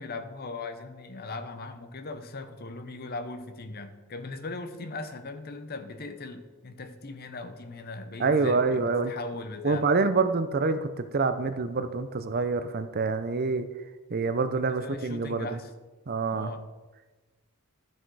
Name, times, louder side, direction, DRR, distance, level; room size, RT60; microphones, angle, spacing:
voice 1, 0.0-9.9 14.5-15.7 16.3-16.7, left 3 dB, 45° left, 9 dB, 0.8 m, -39 dB
voice 2, 8.2-9.1 9.6-13.7 14.1-15.6 16.1-16.5, right 4 dB, 45° right, 11 dB, 0.6 m, -26 dB
12.5 x 6.4 x 4.7 m, 1.2 s
head